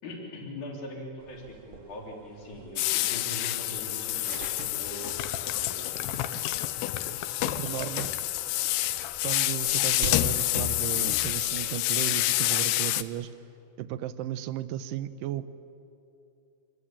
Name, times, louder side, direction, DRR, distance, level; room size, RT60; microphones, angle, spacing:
voice 1, 0.0-5.1 5.4-6.2 7.5-8.2, left 1 dB, 50° left, 0 dB, 4.9 m, -42 dB
sound 1, 1.2-11.7, right 3 dB, 50° right, 1.7 m, -47 dB
sound 2, 2.8-13.0, left 16 dB, 90° left, 2.8 m, -28 dB
sound 3, 4.0-4.1 5.0-8.4 8.8-9.3 9.6-9.7, left 10 dB, 75° left, 2.6 m, -37 dB
voice 2, 7.4-8.1 9.2-13.3 13.8-15.5, right 12 dB, 75° right, 13 dB, 2.1 m, -35 dB
26.0 x 21.5 x 8.8 m, 2.7 s
omnidirectional pair, 4.5 m